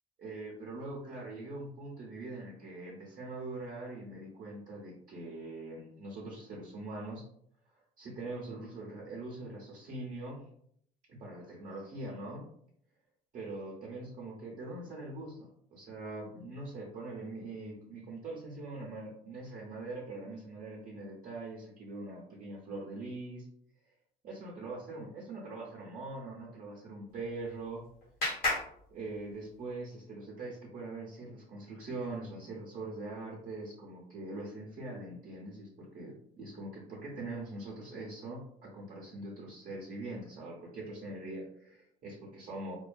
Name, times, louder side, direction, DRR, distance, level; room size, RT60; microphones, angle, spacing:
voice 1, 0.2-7.2 8.0-10.5 11.1-12.4 13.3-23.5 24.2-27.9 28.9-42.7, right 2 dB, 50° right, -4 dB, 0.6 m, -42 dB
Clapping, 27.1-29.7, left 2 dB, 65° left, 1.0 m, -37 dB
2.4 x 2.3 x 2.2 m, 0.68 s
cardioid pair, 110°, 17 cm